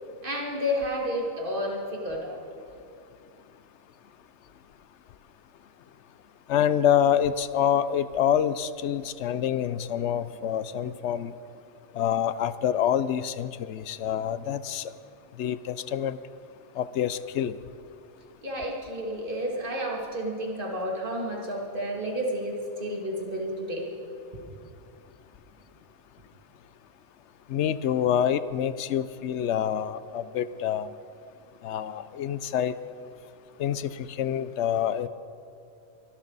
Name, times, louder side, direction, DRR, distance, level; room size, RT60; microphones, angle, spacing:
voice 1, 0.2-2.4 18.4-23.8, equal, 45° right, -1 dB, 2.5 m, -31 dB
voice 2, 6.5-11.3 12.0-14.9 15.4-16.2 16.8-17.6 27.5-30.9 31.6-32.7 33.6-35.1, left 9 dB, 70° left, 15 dB, 0.9 m, -26 dB
24.0 x 12.5 x 4.0 m, 2.6 s
omnidirectional pair, 1.3 m